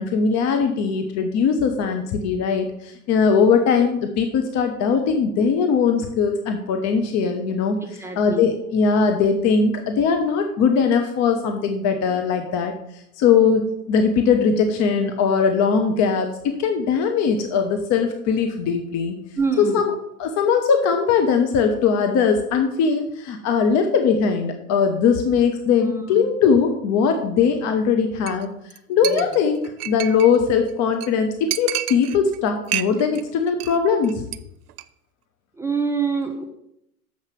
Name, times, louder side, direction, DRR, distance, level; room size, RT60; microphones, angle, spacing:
voice 1, 0.0-12.7 13.2-19.2 19.6-19.9 20.2-28.5 28.9-34.2, left 6 dB, 35° left, 5 dB, 1.1 m, -20 dB
voice 2, 8.0-8.4 19.4-19.8 25.8-26.3 29.1-29.2 35.6-36.4, right 4 dB, 5° right, 1 dB, 1.1 m, -25 dB
Chink clink, 28.3-28.4 28.7-28.8 29.0-30.4 30.7-30.8 31.0-31.1 31.5-32.4 32.7-33.2 33.5-33.8 34.0-34.4 34.7-34.8, right 13 dB, 70° right, 0.7 m, -29 dB
7.2 x 5.7 x 6.8 m, 0.78 s
figure-of-eight pair, 90°, 47 cm